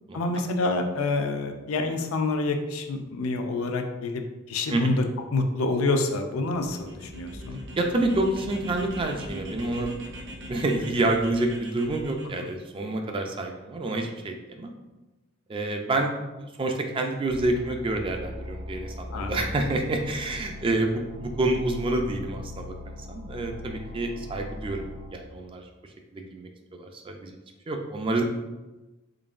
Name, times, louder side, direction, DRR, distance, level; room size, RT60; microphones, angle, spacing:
voice 1, 0.1-4.2 4.5-5.0 5.3-7.6 19.1-19.4, left 3 dB, 80° left, 5 dB, 0.5 m, -27 dB
sound 1, 6.5-12.5, equal, 55° right, 0.8 m, -41 dB
voice 2, 7.8-9.9 10.5-14.7 15.5-16.1 16.4-25.7 26.1-27.3 27.7-28.2, right 2 dB, 25° right, 4 dB, 0.3 m, -28 dB
sound 2, 17.3-25.1, left 1 dB, 90° right, 1.3 m, -39 dB
3.9 x 3.5 x 2.5 m, 1.1 s
head